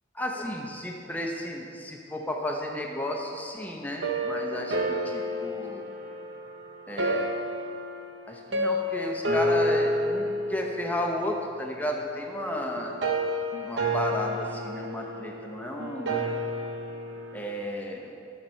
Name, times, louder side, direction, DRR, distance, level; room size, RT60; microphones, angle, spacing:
voice 1, 0.2-5.9 6.9-7.3 8.3-12.9 13.6-16.1 17.3-18.1, left 1 dB, 10° left, 0 dB, 0.7 m, -33 dB
sound 1, 4.0-17.4, equal, 75° right, 0.8 m, -30 dB
12.5 x 6.7 x 4.4 m, 2.6 s
head